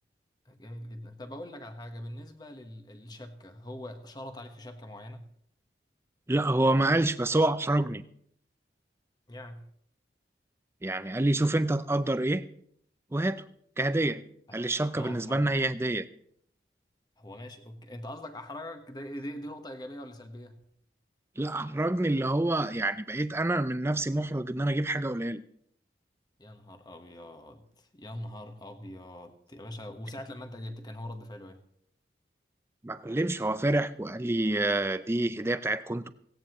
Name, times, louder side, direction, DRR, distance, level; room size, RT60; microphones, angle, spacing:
voice 1, 0.4-5.3 9.3-9.7 14.5-14.6 14.9-15.5 17.2-20.6 26.4-31.6, left 1 dB, 25° left, 7 dB, 1.2 m, -42 dB
voice 2, 6.3-8.0 10.8-12.4 13.1-13.4 13.8-14.2 14.5-16.1 21.4-25.4 32.8-36.1, right 2 dB, 15° right, 13 dB, 0.5 m, -27 dB
17.0 x 16.5 x 3.1 m, 0.69 s
head